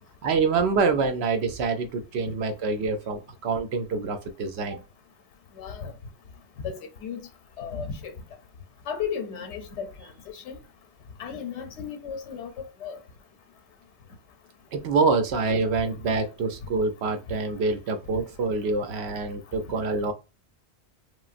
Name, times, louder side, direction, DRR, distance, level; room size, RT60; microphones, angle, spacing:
voice 1, 0.2-4.8 14.7-20.1, right 4 dB, 70° right, 0.8 m, -26 dB
voice 2, 5.6-5.9 6.6-7.3 7.6-8.1 8.9-9.9 10.3-10.6 11.2-12.5 12.8-13.0, left 7 dB, 85° left, 0.9 m, -34 dB
3.0 x 2.2 x 2.4 m
omnidirectional pair, 1.1 m